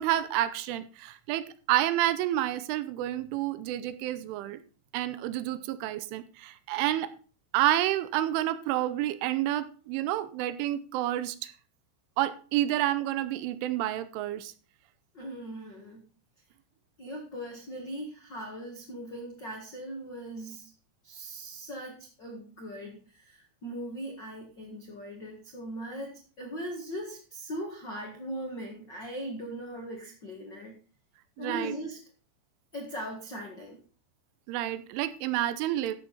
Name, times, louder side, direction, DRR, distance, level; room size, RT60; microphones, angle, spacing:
voice 1, 0.0-4.6 4.9-7.1 7.5-11.5 12.2-14.5 31.4-31.7 34.5-36.0, right 13 dB, 90° right, 13 dB, 3.2 m, -29 dB
voice 2, 15.1-16.0 17.0-20.7 21.0-30.8 31.4-32.0 32.7-33.8, right 1 dB, 90° left, 1 dB, 1.0 m, -39 dB
13.0 x 7.8 x 4.2 m, 0.38 s
omnidirectional pair, 5.6 m